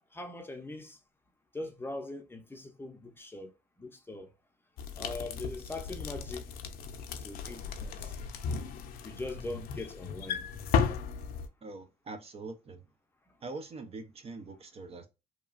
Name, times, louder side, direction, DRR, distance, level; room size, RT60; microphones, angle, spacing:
voice 1, 0.1-1.0 1.5-4.3 5.0-6.5 7.2-8.1 9.0-10.5, left 2 dB, 15° left, 0.5 m, -41 dB
sound 1, 4.8-11.5, left 6 dB, 60° left, 0.5 m, -35 dB
voice 2, 11.6-12.8 13.4-15.1, right 3 dB, 35° right, 0.5 m, -43 dB
2.9 x 2.3 x 2.4 m
cardioid pair, 110°, 17 cm